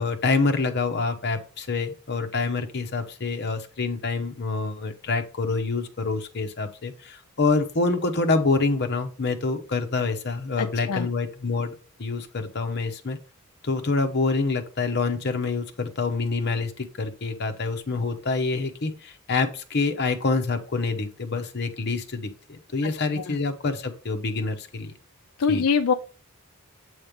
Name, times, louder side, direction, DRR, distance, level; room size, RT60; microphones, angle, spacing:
voice 1, 0.0-11.7 12.0-13.2 13.6-24.9 25.5-25.7, left 3 dB, 50° left, 6 dB, 0.9 m, -26 dB
voice 2, 10.6-11.1 23.3-23.4 25.4-25.9, left 6 dB, 80° left, 7 dB, 0.5 m, -23 dB
8.0 x 3.2 x 5.1 m, 0.38 s
head